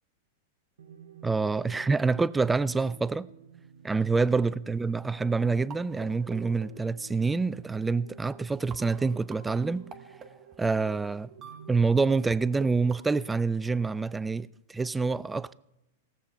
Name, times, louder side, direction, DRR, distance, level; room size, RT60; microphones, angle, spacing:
sound 1, 0.8-12.8, right 8 dB, 85° right, 0.8 m, -51 dB
voice 1, 1.2-3.3 3.8-9.9 10.6-11.3 11.7-15.5, right 4 dB, 10° right, 0.3 m, -27 dB
sound 2, 4.9-7.4 8.1-8.2 8.4-12.4 12.6-13.0, right 6 dB, 25° right, 0.9 m, -47 dB
17.5 x 7.0 x 4.4 m
hypercardioid pair, 125°, 0 cm